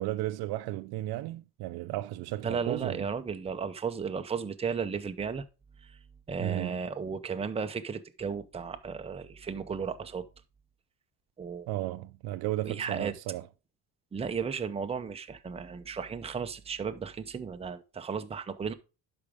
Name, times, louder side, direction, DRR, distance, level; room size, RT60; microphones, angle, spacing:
voice 1, 0.0-3.1 6.4-6.8 11.7-13.4, right 16 dB, 75° right, 0.6 m, -34 dB
voice 2, 2.4-5.4 5.8-6.0 6.3-10.3 11.4-11.7 12.6-13.1 14.1-18.7, right 6 dB, 15° right, 0.6 m, -34 dB
12.0 x 5.1 x 3.5 m
cardioid pair, 125°, 39 cm